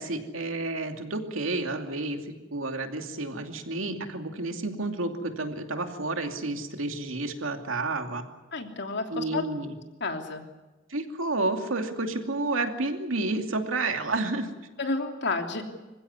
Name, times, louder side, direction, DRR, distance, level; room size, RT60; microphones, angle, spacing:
voice 1, 0.0-8.2 9.1-9.7 10.9-14.5, right 2 dB, 85° right, 5 dB, 2.6 m, -30 dB
voice 2, 8.5-9.4 10.0-10.4 14.8-15.6, left 3 dB, 60° left, 4 dB, 3.1 m, -30 dB
26.5 x 15.5 x 9.7 m, 1.2 s
head